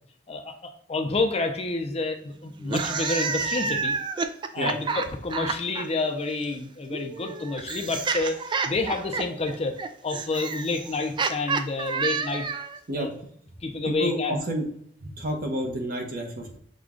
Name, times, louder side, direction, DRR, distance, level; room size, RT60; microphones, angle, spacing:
voice 1, 0.3-3.9 4.5-9.7 10.0-12.5 13.0-13.1 13.6-14.4, left 3 dB, 35° left, 5 dB, 0.5 m, -29 dB
sound 1, 2.6-5.8 6.9-12.8, right 4 dB, 25° right, 0.3 m, -29 dB
voice 2, 13.9-14.7 15.0-16.6, equal, 55° right, 3 dB, 1.0 m, -29 dB
6.2 x 2.3 x 3.7 m, 0.66 s
head